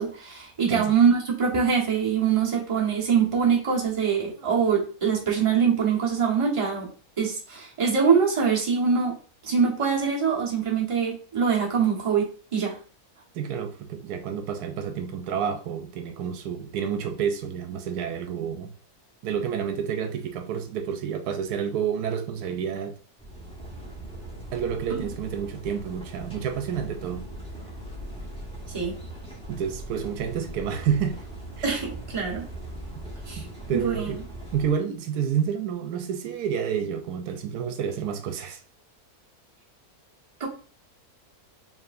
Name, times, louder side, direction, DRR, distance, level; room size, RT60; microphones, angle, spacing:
voice 1, 0.0-6.9 7.2-9.1 9.4-12.3 12.5-12.8 24.9-25.0 28.7-28.9 31.6-32.4 33.3-33.4 33.7-34.1 40.4-40.5, right 6 dB, 25° right, -3 dB, 1.0 m, -23 dB
voice 2, 13.3-18.7 19.2-23.0 24.5-27.2 29.5-31.2 31.6-31.7 33.4-34.2 34.5-38.6, right 8 dB, 85° right, 7 dB, 1.2 m, -29 dB
sound 1, 23.2-34.7, right 1 dB, 5° left, 1.2 m, -40 dB
4.8 x 3.0 x 2.5 m, 0.40 s
omnidirectional pair, 1.6 m